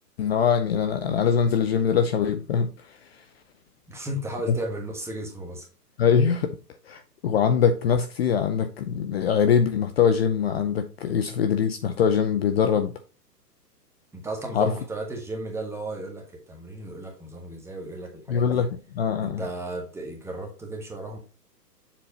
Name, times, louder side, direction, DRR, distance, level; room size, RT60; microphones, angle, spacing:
voice 1, 0.2-3.0 6.0-6.5 6.9-13.0 14.5-14.7 18.3-18.7 19.0-19.4, left 7 dB, 40° left, 0.6 m, -23 dB
voice 2, 3.9-5.7 14.1-18.7 19.2-21.2, right 2 dB, 5° right, 1.4 m, -35 dB
7.1 x 4.5 x 4.1 m
hypercardioid pair, 135°, 49 cm